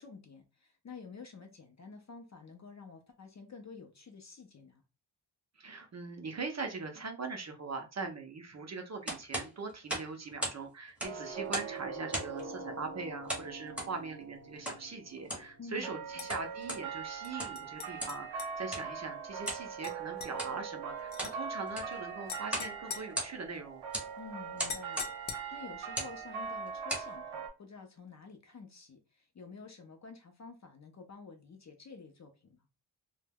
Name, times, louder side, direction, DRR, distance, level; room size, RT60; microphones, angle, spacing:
voice 1, 0.0-4.8 15.6-15.9 24.2-32.6, left 5 dB, 40° left, 0.4 m, -50 dB
voice 2, 5.6-23.8, right 4 dB, 40° right, 0.4 m, -41 dB
sound 1, 9.1-10.6 10.9-11.8 12.1-12.5 13.3-13.9 14.6-14.8 15.2-15.5 16.1-16.8 17.3-17.6 18.0-18.2 18.7-18.9 19.4-19.7 20.3-20.6 21.0-21.4 21.7-22.0 22.5-22.7 23.0-23.6 23.9-24.1 24.6-25.1 25.8-26.2 26.7-27.1, right 1 dB, 5° right, 0.7 m, -37 dB
sound 2, 11.0-27.5, right 6 dB, 85° right, 0.8 m, -42 dB
sound 3, 16.2-16.3 17.2-18.5 19.4-19.6 19.8-20.3 21.1-21.4 22.3-23.8 24.7-25.7, left 6 dB, 85° left, 0.6 m, -44 dB
2.2 x 2.1 x 3.3 m
wide cardioid pair, 160°, 47 cm